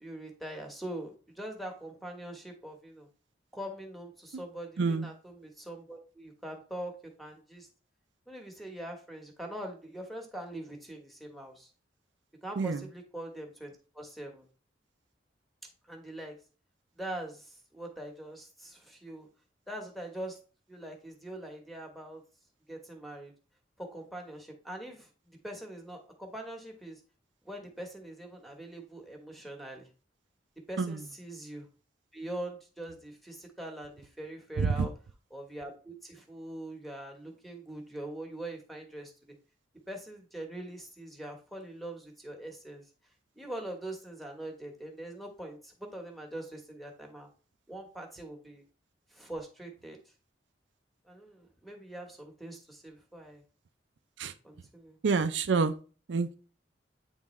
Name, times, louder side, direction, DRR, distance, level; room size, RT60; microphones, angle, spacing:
voice 1, 0.0-3.1 3.5-6.9 7.2-7.7 8.3-11.7 12.4-14.5 15.9-16.4 17.0-19.3 19.7-20.4 20.7-22.2 22.7-23.3 23.8-27.0 27.4-29.9 30.7-31.6 32.1-34.9 35.3-39.1 39.9-42.8 43.4-47.3 47.7-48.6 49.1-50.0 51.0-53.4 54.4-55.0, right 1 dB, ahead, 2 dB, 1.1 m, -43 dB
voice 2, 4.8-5.1 12.6-12.8 30.8-31.0 34.6-34.9 54.2-54.3 55.0-55.7 56.1-56.4, right 4 dB, 80° right, 10 dB, 0.5 m, -27 dB
8.9 x 3.6 x 3.1 m, 0.37 s
head